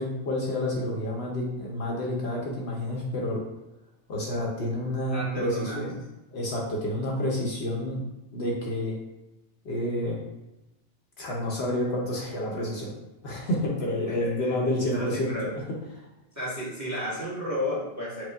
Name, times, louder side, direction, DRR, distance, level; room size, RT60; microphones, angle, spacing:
voice 1, 0.0-3.4 4.1-5.9 6.3-8.0 8.3-8.9 9.6-10.2 11.2-12.9 13.2-15.3 15.9-16.1, left 1 dB, 60° left, -2 dB, 1.0 m, -29 dB
voice 2, 5.1-5.9 14.1-14.5 14.8-15.5 16.3-18.2, left 1 dB, 15° right, -7 dB, 1.2 m, -33 dB
4.9 x 2.2 x 3.4 m, 0.96 s
omnidirectional pair, 1.2 m